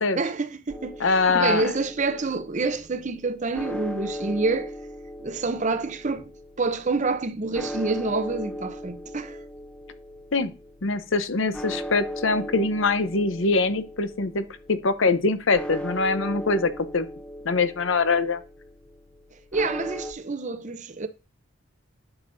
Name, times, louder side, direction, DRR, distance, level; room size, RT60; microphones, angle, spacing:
voice 1, 0.1-4.7 5.2-6.3 6.6-9.4 19.5-21.1, right 3 dB, 35° right, 0.6 m, -27 dB
sound 1, 0.7-20.1, equal, 5° left, 0.7 m, -38 dB
voice 2, 1.0-1.7 10.3-10.5 10.8-17.1 17.4-18.4, left 3 dB, 60° left, 0.7 m, -23 dB
11.0 x 6.9 x 2.6 m
head